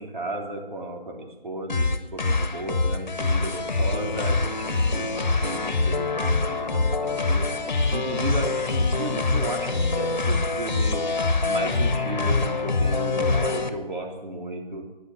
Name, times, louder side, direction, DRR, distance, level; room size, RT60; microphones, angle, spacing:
voice 1, 0.0-7.5 7.9-11.1 11.4-14.9, right 2 dB, 50° right, 1 dB, 3.5 m, -34 dB
sound 1, 1.7-13.7, left 3 dB, 45° left, 1.5 m, -24 dB
sound 2, 2.4-12.0, left 1 dB, 90° right, 7.5 m, -46 dB
13.5 x 10.5 x 9.1 m, 1.1 s
figure-of-eight pair, 165°, 31 cm